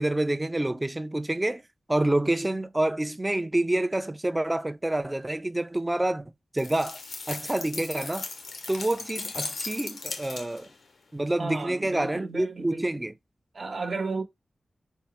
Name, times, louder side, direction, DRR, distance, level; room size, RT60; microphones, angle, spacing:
voice 1, 0.0-1.6 1.9-7.0 7.3-8.3 8.7-10.7 11.1-13.1, right 1 dB, 20° right, 0.4 m, -27 dB
sound 1, 6.6-10.8, left 3 dB, 90° left, 0.8 m, -37 dB
voice 2, 11.4-12.9 13.5-14.2, right 3 dB, 60° right, 0.9 m, -33 dB
4.5 x 2.0 x 4.3 m
wide cardioid pair, 90°, 0 cm